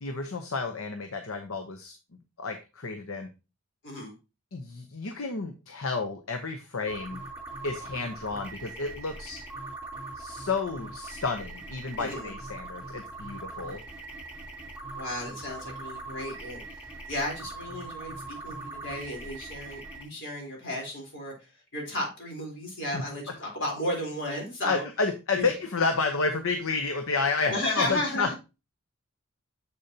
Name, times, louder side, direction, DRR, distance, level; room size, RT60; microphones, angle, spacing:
voice 1, 0.0-1.9 2.4-3.3 4.5-7.2 7.6-9.4 10.2-13.8 22.9-23.0 24.6-28.3, left 4 dB, 80° left, 6 dB, 0.8 m, -31 dB
voice 2, 3.8-4.1 12.0-12.3 14.9-16.8 17.1-21.3 21.7-24.8 25.3-25.5 27.5-28.3, left 1 dB, 60° left, -1 dB, 3.6 m, -34 dB
sound 1, 6.9-20.0, right 2 dB, 5° right, 3.1 m, -41 dB
7.3 x 6.6 x 2.8 m, 0.28 s
head